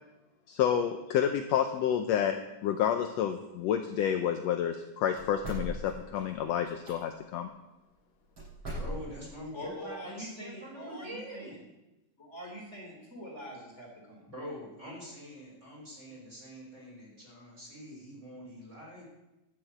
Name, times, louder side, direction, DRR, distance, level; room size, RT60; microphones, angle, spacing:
voice 1, 0.5-7.5, left 9 dB, 75° left, 6 dB, 1.6 m, -29 dB
sound 1, 5.2-6.9 8.4-9.4, equal, 45° right, 6.7 m, -39 dB
voice 2, 8.8-11.6 14.3-19.0, equal, 20° right, -3 dB, 4.5 m, -45 dB
voice 3, 9.5-11.6 12.2-14.2, equal, 20° left, -1 dB, 3.2 m, -43 dB
12.0 x 7.2 x 8.1 m, 0.98 s
omnidirectional pair, 3.6 m